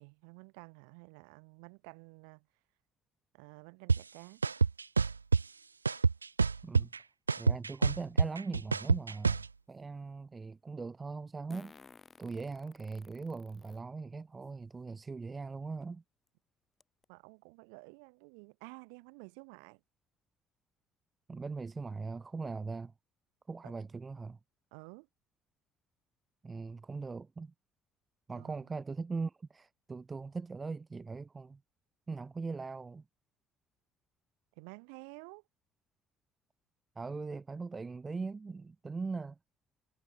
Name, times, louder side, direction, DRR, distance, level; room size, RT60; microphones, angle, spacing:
voice 1, 0.0-2.5 3.3-4.4 17.1-19.8 23.6-23.8 24.7-25.1 28.3-28.7 34.6-35.4, right 40 dB or more, 65° right, 5.4 m, -52 dB
sound 1, 3.9-4.0 4.4-5.4 5.9-7.0 7.3-9.5, right 5 dB, 85° right, 0.5 m, -26 dB
voice 2, 7.4-11.7 12.2-16.0 21.3-22.9 23.5-24.4 26.4-27.5 28.3-31.6 32.1-33.0 36.9-39.4, right 4 dB, 25° right, 1.6 m, -40 dB
Fart, 8.8-8.9 11.5-13.8 14.4-14.5 15.8-15.9 16.3-16.4 16.8-17.0, left 4 dB, 30° left, 5.4 m, -56 dB
figure-of-eight pair, 50°, 0 cm